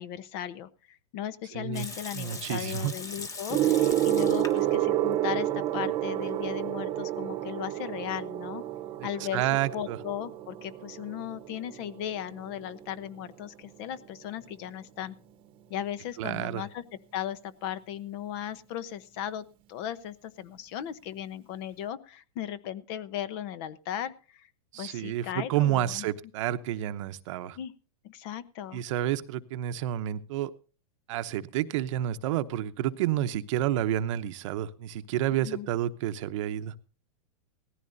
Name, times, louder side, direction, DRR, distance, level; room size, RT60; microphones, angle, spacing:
voice 1, 0.0-8.6 9.0-9.4 9.7-15.1 15.7-16.8 17.1-24.5 24.8-26.1 27.6-27.7 28.0-28.8 35.4-35.7, left 10 dB, 45° left, 15 dB, 1.0 m, -37 dB
voice 2, 1.5-1.9 2.1-2.9 9.3-10.0 16.2-16.6 24.7-27.6 28.7-30.5 31.1-36.7, right 12 dB, 60° right, 11 dB, 0.9 m, -30 dB
Water tap faucet / Sink (filling or washing) / Liquid, 1.7-4.8 5.1-5.2 5.8-6.4, left 3 dB, 20° left, 1.5 m, -41 dB
Gong, 3.5-13.3 14.2-14.5, right 13 dB, 30° right, 1.1 m, -30 dB
17.5 x 14.5 x 2.7 m, 0.36 s
supercardioid pair, 145°, 18 cm